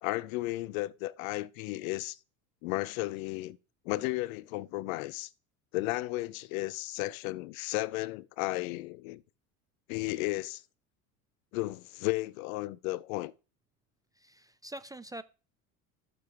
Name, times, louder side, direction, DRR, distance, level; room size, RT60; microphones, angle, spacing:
voice 1, 0.0-2.2 2.6-3.6 3.8-5.3 5.7-9.2 9.9-10.6 11.5-13.3, left 19 dB, 70° left, 0.6 m, -34 dB
voice 2, 14.2-15.2, right 1 dB, 10° right, 0.4 m, -44 dB
15.0 x 6.9 x 3.0 m
hypercardioid pair, 80°, 43 cm